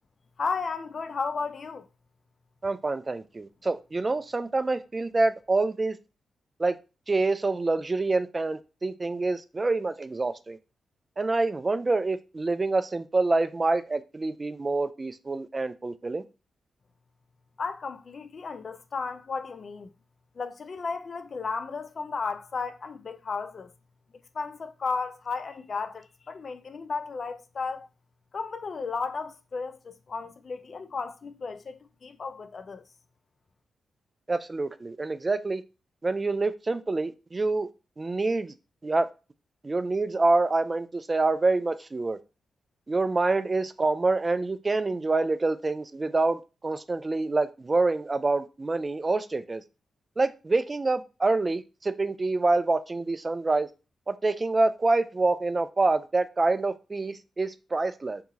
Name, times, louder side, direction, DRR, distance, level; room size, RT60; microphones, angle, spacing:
voice 1, 0.4-1.9 17.6-19.9 20.4-23.7 24.3-27.9 28.3-32.8, left 4 dB, 55° left, 0.3 m, -34 dB
voice 2, 2.6-6.0 6.6-6.8 7.1-10.6 11.2-16.2 34.3-35.6 36.0-37.7 38.0-38.5 38.8-39.1 39.6-42.2 42.9-49.6 50.2-53.7 54.1-58.2, right 3 dB, 35° right, 0.3 m, -26 dB
2.7 x 2.3 x 2.8 m
supercardioid pair, 45°, 0 cm